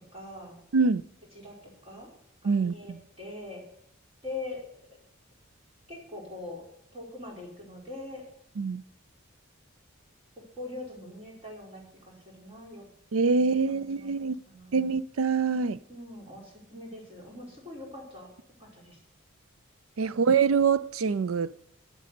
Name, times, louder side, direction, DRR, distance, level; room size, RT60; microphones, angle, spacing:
voice 1, 0.1-0.6 1.3-2.1 2.4-3.6 4.2-4.6 5.9-6.6 6.9-8.2 10.5-12.9 13.2-14.1 14.4-14.8 15.5-18.3 18.6-19.0, left 2 dB, 30° right, 4.8 m, -42 dB
voice 2, 2.4-3.0 8.6-8.8 13.1-14.4 14.7-15.8 20.0-21.5, right 5 dB, 80° right, 0.5 m, -25 dB
11.0 x 9.2 x 6.8 m
head